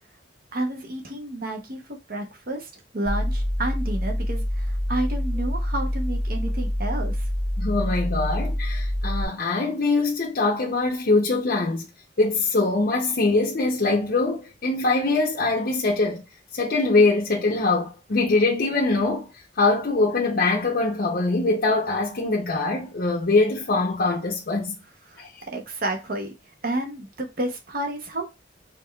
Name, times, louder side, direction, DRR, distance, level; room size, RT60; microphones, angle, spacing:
voice 1, 0.5-1.8 2.1-7.3 25.1-25.2 25.5-26.3 26.6-28.4, right 1 dB, 50° right, 0.7 m, -30 dB
sound 1, 3.1-9.2, equal, 70° right, 1.8 m, -26 dB
voice 2, 7.6-11.9 12.2-16.2 16.5-19.3 19.6-24.8 25.2-25.3, left 3 dB, 50° left, 0.6 m, -23 dB
5.1 x 3.1 x 2.2 m
head